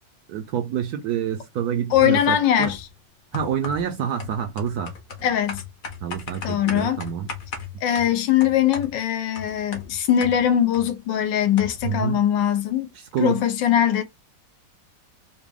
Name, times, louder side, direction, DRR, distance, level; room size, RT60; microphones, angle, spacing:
voice 1, 0.3-2.7 3.3-4.9 6.0-7.3 11.8-12.2 12.9-13.4, right 8 dB, 70° right, 0.9 m, -27 dB
voice 2, 1.9-2.9 5.2-5.6 6.4-7.0 7.8-12.9 13.2-14.0, left 10 dB, 80° left, 1.4 m, -21 dB
sound 1, 1.9-2.2 2.6-3.0 3.3-11.0 11.2-11.3 11.6-12.0, left 6 dB, 55° left, 1.3 m, -37 dB
4.0 x 2.1 x 3.4 m
omnidirectional pair, 2.0 m